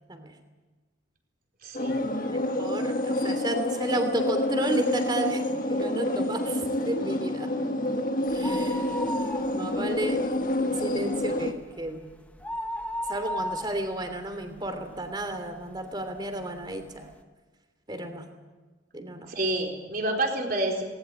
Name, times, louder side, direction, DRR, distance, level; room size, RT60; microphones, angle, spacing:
voice 1, 1.6-2.0 19.3-20.8, right 1 dB, 45° right, 2 dB, 4.4 m, -28 dB
sound 1, 1.7-11.5, left 1 dB, 45° left, 1.6 m, -28 dB
voice 2, 2.2-5.4 5.7-7.5 8.3-10.3 10.6-12.1 13.1-17.1 17.9-18.3 18.9-19.3, right 1 dB, 20° right, 7 dB, 3.0 m, -33 dB
sound 2, 8.3-9.9 10.3-10.4 10.8-15.2 15.7-15.8 16.6-16.7 16.9-17.0, left 1 dB, 5° left, 1.1 m, -35 dB
19.5 x 19.0 x 9.1 m, 1.3 s
head